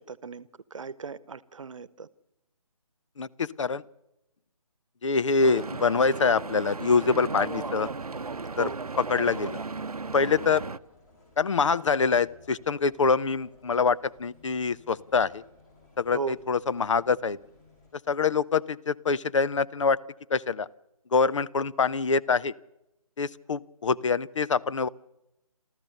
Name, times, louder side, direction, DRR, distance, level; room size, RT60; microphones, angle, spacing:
voice 1, 0.0-2.1 8.5-8.8 16.1-16.4, right 5 dB, 60° right, 18 dB, 1.0 m, -36 dB
voice 2, 3.2-3.8 5.0-7.9 8.6-8.7 9.0-9.6 10.1-10.6 11.4-15.4 16.0-17.4 18.1-20.0 20.3-20.7 21.1-22.5 23.2-24.9, left 5 dB, 55° left, 17 dB, 0.7 m, -25 dB
Stream / Boat Water vehicle, 5.4-10.8, right 4 dB, 90° right, 0.7 m, -35 dB
sound 1, 7.0-17.9, left 3 dB, 30° left, 6.7 m, -57 dB
28.5 x 14.0 x 6.6 m, 0.88 s
figure-of-eight pair, 150°, 19 cm